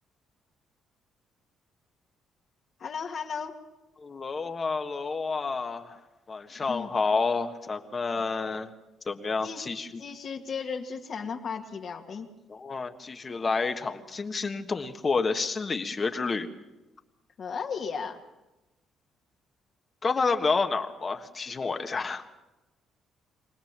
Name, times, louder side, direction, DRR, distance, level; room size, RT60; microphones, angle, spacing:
voice 1, 2.8-3.6 6.6-6.9 9.4-9.7 10.0-12.3 17.4-18.2, left 6 dB, 50° left, 2 dB, 2.0 m, -35 dB
voice 2, 4.0-6.0 6.3-8.7 9.1-9.9 12.5-16.5 20.0-22.2, left 4 dB, 30° left, 6 dB, 1.5 m, -29 dB
24.5 x 18.5 x 7.5 m, 1.0 s
cardioid pair, 100°, 0 cm